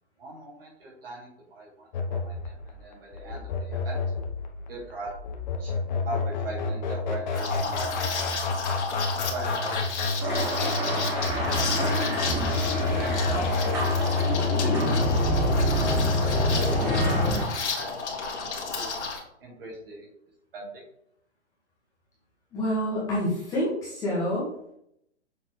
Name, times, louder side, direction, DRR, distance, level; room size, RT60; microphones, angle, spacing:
voice 1, 0.2-4.0 4.7-5.1 5.6-5.7 6.0-8.4 9.3-12.3 13.0-14.0 14.6-17.5 17.7-18.9 19.4-20.1 20.5-20.8, right 2 dB, 55° right, -3 dB, 2.5 m, -41 dB
sound 1, 1.9-17.3, left 3 dB, 40° left, 1.0 m, -28 dB
Liquid, 7.3-19.2, left 4 dB, 75° left, 1.7 m, -32 dB
sound 2, 10.2-17.4, right 2 dB, 10° right, 0.7 m, -29 dB
voice 2, 22.5-24.5, equal, 10° left, -7 dB, 1.3 m, -27 dB
6.7 x 4.1 x 3.8 m, 0.74 s
hypercardioid pair, 170°, 34 cm